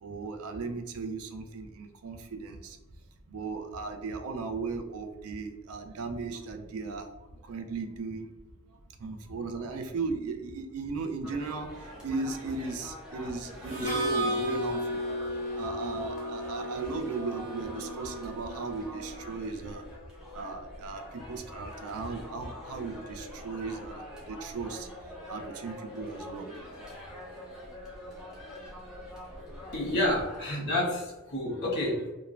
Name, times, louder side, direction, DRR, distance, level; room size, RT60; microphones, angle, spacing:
voice 1, 0.0-2.8 3.3-7.1 7.5-8.3 9.0-15.0 15.6-19.8 20.3-24.0 24.3-24.9 25.3-26.5, right 4 dB, 65° right, 6 dB, 0.4 m, -36 dB
sound 1, 11.2-30.4, left 1 dB, 5° right, 0.7 m, -45 dB
Harmonica, 13.6-19.4, right 2 dB, 20° right, 1.2 m, -39 dB
Mallet percussion, 13.8-19.7, left 1 dB, 35° left, 0.5 m, -36 dB
voice 2, 29.7-32.1, left 1 dB, 50° left, -5 dB, 1.1 m, -29 dB
3.1 x 2.1 x 2.4 m, 1.1 s
head